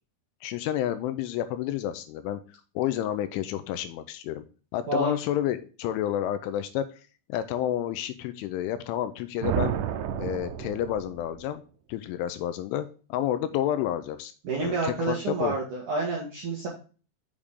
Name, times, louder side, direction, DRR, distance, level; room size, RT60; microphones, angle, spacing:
voice 1, 0.4-2.4 2.8-4.4 4.7-6.9 7.3-9.7 10.2-11.6 11.9-14.3 14.6-15.5, left 11 dB, 85° left, 10 dB, 2.9 m, -30 dB
sound 1, 9.4-11.4, right 11 dB, 85° right, 3.2 m, -31 dB
voice 2, 14.4-16.7, right 3 dB, 60° right, -2 dB, 2.1 m, -29 dB
7.2 x 6.6 x 3.6 m, 0.36 s
omnidirectional pair, 5.8 m